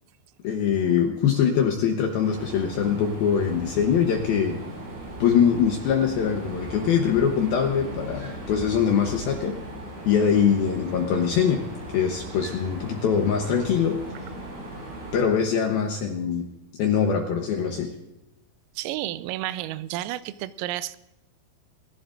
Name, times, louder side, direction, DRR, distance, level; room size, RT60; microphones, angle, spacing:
voice 1, 0.4-4.6 5.2-9.6 10.1-11.6 11.9-14.0 15.1-16.4 16.8-17.9, left 7 dB, 80° left, 2 dB, 2.1 m, -23 dB
sound 1, 2.2-15.2, right 1 dB, 70° right, 8.8 m, -38 dB
voice 2, 18.8-21.0, right 15 dB, 90° right, 16 dB, 3.3 m, -31 dB
27.5 x 11.0 x 2.6 m, 0.94 s
omnidirectional pair, 5.9 m